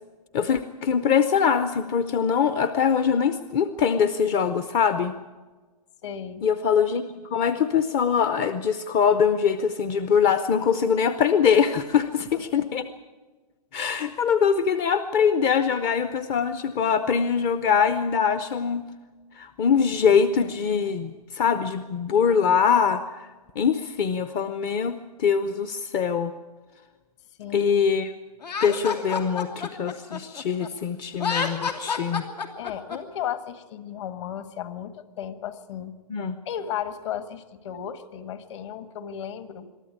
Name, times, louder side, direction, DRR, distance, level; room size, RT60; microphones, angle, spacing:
voice 1, 0.3-5.1 6.4-7.0 7.3-12.8 13.7-18.8 19.4-23.3 23.6-26.3 27.5-28.1 28.6-32.2 36.1-36.4, left 7 dB, 20° left, 12 dB, 0.6 m, -23 dB
voice 2, 6.0-6.5 12.0-12.7 27.4-27.7 32.6-35.9 36.4-39.7, left 9 dB, 45° left, 11 dB, 1.7 m, -35 dB
Laughter, 28.4-30.7 31.1-33.0, left 5 dB, 85° left, 3.0 m, -29 dB
23.0 x 13.0 x 8.6 m, 1.3 s
hypercardioid pair, 150°, 20 cm